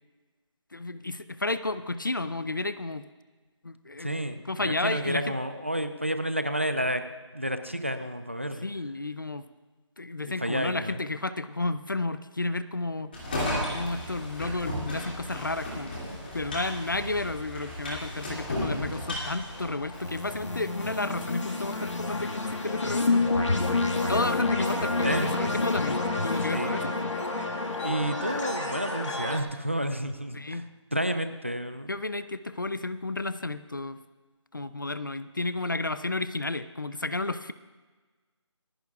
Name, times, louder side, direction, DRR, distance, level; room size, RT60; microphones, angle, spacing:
voice 1, 0.7-3.1 3.6-4.1 4.5-5.3 8.6-9.4 10.0-13.1 13.7-15.9 16.3-23.3 24.1-27.0 30.3-30.7 31.9-34.0 34.5-37.5, left 2 dB, 45° left, 13 dB, 0.4 m, -32 dB
voice 2, 4.0-7.0 7.3-8.7 10.4-11.0 25.0-25.3 26.5-26.7 27.8-30.6 30.9-31.9, equal, 25° right, 9 dB, 0.4 m, -30 dB
sound 1, 13.1-20.3, left 1 dB, 20° left, 2.3 m, -34 dB
sound 2, 18.4-29.4, left 3 dB, 85° left, 1.7 m, -29 dB
28.5 x 10.5 x 2.4 m, 1.4 s
figure-of-eight pair, 180°, 15 cm